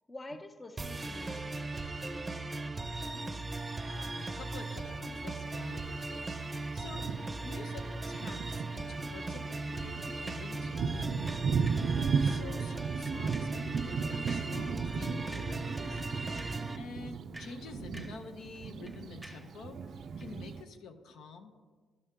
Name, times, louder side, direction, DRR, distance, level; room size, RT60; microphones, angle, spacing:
voice 1, 0.1-3.5 16.5-17.0, left 1 dB, 20° left, 7 dB, 0.6 m, -50 dB
sound 1, 0.8-16.8, right 2 dB, 20° right, 0.7 m, -38 dB
voice 2, 3.8-16.3 16.8-21.5, left 5 dB, 80° left, 6 dB, 0.7 m, -48 dB
Thunder, 4.6-4.8 5.7-5.8 6.4-6.5 6.9-20.6, right 5 dB, 60° right, 0.3 m, -36 dB
sound 2, 10.3-10.6 11.3-11.9 12.5-12.7 13.1-13.6 14.3-14.6 14.9-15.0 15.3-15.7 15.9-16.7 17.1-18.3 18.6-19.6 20.2-20.3, right 1 dB, ahead, 1.0 m, -51 dB
12.0 x 5.4 x 3.6 m, 1.5 s
cardioid pair, 90°, 0 cm